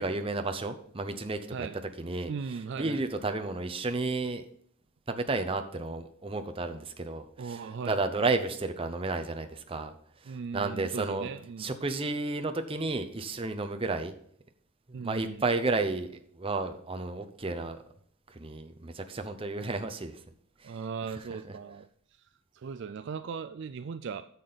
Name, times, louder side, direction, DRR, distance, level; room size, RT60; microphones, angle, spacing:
voice 1, 0.0-1.7 2.0-4.5 5.1-11.3 11.6-14.1 14.9-17.8 18.3-20.2 20.6-20.8 21.1-21.5, right 3 dB, 25° right, 0.7 m, -32 dB
voice 2, 2.3-3.0 7.4-8.0 10.3-11.7 14.9-15.4 20.6-22.3 22.5-24.2, right 5 dB, 55° right, 0.3 m, -38 dB
9.6 x 6.8 x 4.0 m
head